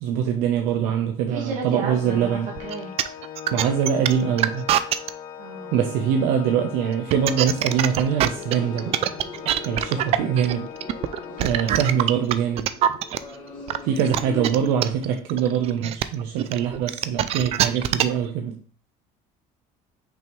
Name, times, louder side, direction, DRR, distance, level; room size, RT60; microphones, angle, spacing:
voice 1, 0.0-2.5 3.5-4.7 5.7-8.9 9.6-10.7 11.4-12.7 13.8-18.5, right 8 dB, 90° right, 3 dB, 0.8 m, -23 dB
voice 2, 1.3-2.9 5.4-5.8, right 3 dB, 60° right, -1 dB, 2.0 m, -33 dB
Organ, 1.8-12.6, left 8 dB, 65° left, 0.7 m, -40 dB
sound 1, 2.6-5.1 6.9-13.2 13.7-18.2, right 12 dB, 40° right, 0.3 m, -23 dB
sound 2, 7.6-14.7, left 4 dB, 30° left, 2.2 m, -41 dB
5.8 x 5.2 x 3.1 m, 0.43 s
cardioid pair, 160°, 15 cm